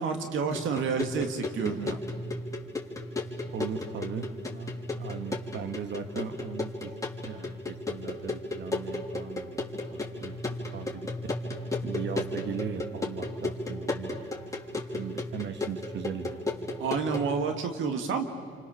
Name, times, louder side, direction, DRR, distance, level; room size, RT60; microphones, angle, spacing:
voice 1, 0.0-2.0 16.8-18.2, right 5 dB, 80° right, 6 dB, 1.8 m, -29 dB
sound 1, 0.5-17.3, left 2 dB, 15° left, 3.7 m, -35 dB
voice 2, 3.4-6.9 7.2-9.6 9.9-10.4 10.7-11.1 11.8-14.3 14.7-16.5, right 6 dB, 65° right, 8 dB, 1.8 m, -38 dB
29.0 x 25.5 x 7.1 m, 2.3 s
cardioid pair, 90°, 20 cm